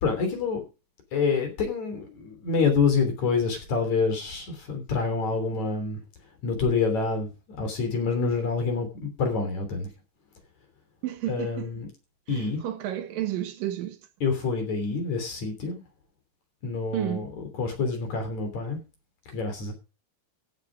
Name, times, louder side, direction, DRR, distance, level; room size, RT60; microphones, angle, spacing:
voice 1, 0.0-0.6 1.1-6.0 6.4-7.3 7.6-9.9 11.3-11.9 12.3-12.6 14.2-15.8 16.6-17.3 17.6-18.8 19.3-19.7, left 4 dB, 55° left, 4.4 m, -27 dB
voice 2, 11.0-11.7 12.3-14.0 16.9-17.3, right 12 dB, 85° right, 2.9 m, -31 dB
16.0 x 7.7 x 5.0 m
omnidirectional pair, 3.9 m